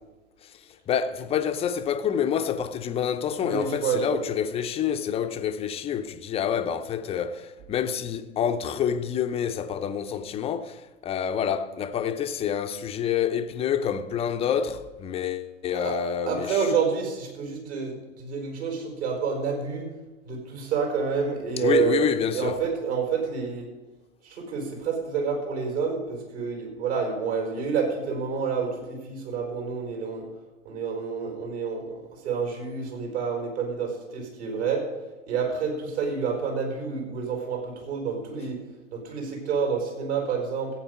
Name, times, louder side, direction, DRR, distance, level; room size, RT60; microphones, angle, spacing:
voice 1, 0.9-16.7 21.6-22.6, left 8 dB, 15° left, 0.6 m, -27 dB
voice 2, 3.4-4.2 15.7-15.9 16.3-19.9 20.2-22.0 22.3-23.7 24.2-30.3 30.6-34.8 35.3-38.6 38.9-40.7, right 6 dB, 55° right, 5.1 m, -28 dB
15.5 x 8.7 x 5.2 m
figure-of-eight pair, 105°, 39 cm